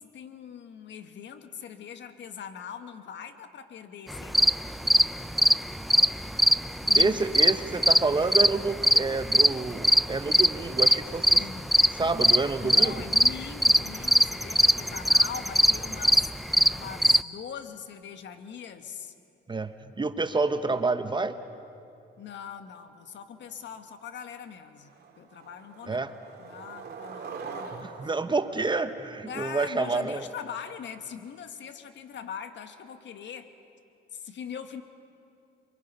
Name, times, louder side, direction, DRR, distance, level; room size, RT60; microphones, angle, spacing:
voice 1, 0.0-4.7 6.8-7.2 11.4-11.8 12.6-19.1 22.2-27.9 29.2-33.5 34.1-34.8, left 7 dB, 65° left, 8 dB, 1.5 m, -41 dB
sound 1, 4.1-17.2, equal, ahead, 0.4 m, -21 dB
voice 2, 7.0-11.5 11.9-13.0 19.5-21.4 25.9-26.1 27.7-30.2, right 3 dB, 25° right, 10 dB, 1.0 m, -28 dB
Skateboard, 23.7-23.8 24.2-24.5 24.9-29.5, right 5 dB, 55° right, 3.0 m, -43 dB
28.5 x 23.0 x 5.5 m, 2.6 s
cardioid pair, 90°, 20 cm